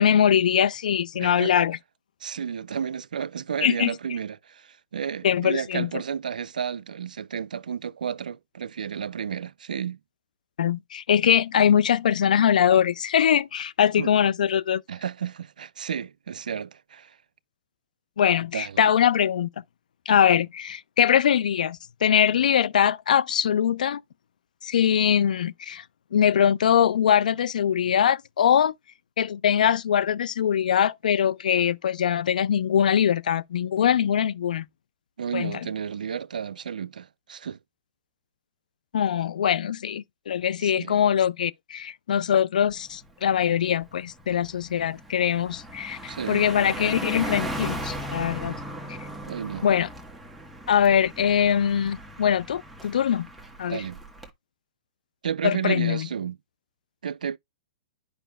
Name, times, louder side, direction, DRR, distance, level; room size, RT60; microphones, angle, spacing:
voice 1, 0.0-1.8 3.6-3.9 5.2-5.9 10.6-14.8 18.2-19.5 20.1-24.0 24.6-25.8 26.1-28.7 29.2-34.7 35.3-35.6 38.9-48.6 48.9-49.0 49.6-49.9 50.7-53.3 53.6-53.8 55.4-56.1, left 9 dB, 75° left, 0.4 m, -22 dB
voice 2, 1.2-1.5 2.2-10.0 14.0-14.1 14.9-17.2 18.5-18.9 35.2-37.6 40.6-41.0 46.1-46.5 49.3-49.6 53.7-54.0 55.2-56.4 57.0-57.4, right 7 dB, 80° right, 0.3 m, -32 dB
Car passing by, 42.7-42.9 43.3-54.3, right 1 dB, ahead, 1.1 m, -37 dB
10.0 x 5.0 x 2.2 m
hypercardioid pair, 120°, 4 cm